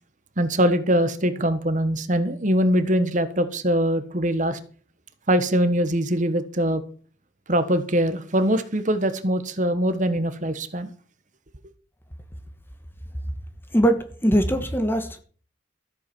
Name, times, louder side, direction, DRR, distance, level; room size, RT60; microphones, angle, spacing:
voice 1, 0.4-4.6 5.3-6.8 7.5-10.9, equal, 40° right, 1.3 m, -22 dB
voice 2, 13.7-15.2, right 1 dB, 10° left, 1.4 m, -21 dB
14.0 x 8.3 x 6.2 m
head